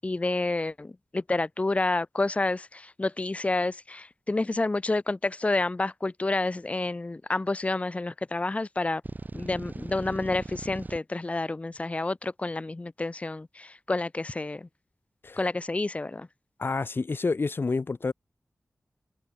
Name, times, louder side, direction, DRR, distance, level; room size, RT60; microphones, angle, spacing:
voice 1, 0.0-9.0 9.3-14.7 15.4-16.3, left 2 dB, 30° left, 0.8 m, -29 dB
sound 1, 9.0-11.0, right 3 dB, 40° right, 6.0 m, -38 dB
voice 2, 16.6-18.1, left 4 dB, 55° left, 1.2 m, -28 dB
open air
wide cardioid pair, 90°, 5 cm